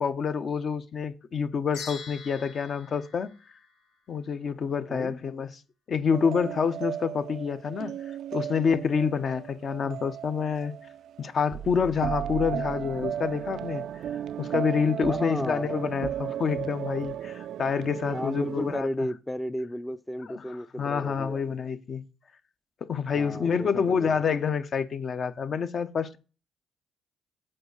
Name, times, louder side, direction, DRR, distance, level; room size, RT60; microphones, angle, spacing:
voice 1, 0.0-3.3 4.1-5.6 5.9-10.7 11.2-13.9 14.4-19.1 20.3-20.4 20.8-22.0 22.8-26.2, left 6 dB, 50° left, 0.8 m, -28 dB
sound 1, 1.7-4.2, left 5 dB, 90° left, 1.5 m, -44 dB
sound 2, 6.1-18.8, right 10 dB, 70° right, 0.3 m, -35 dB
voice 2, 15.1-15.7 18.1-21.4 23.1-24.2, left 1 dB, 10° left, 0.5 m, -34 dB
7.8 x 4.8 x 6.5 m
cardioid pair, 90°, 0 cm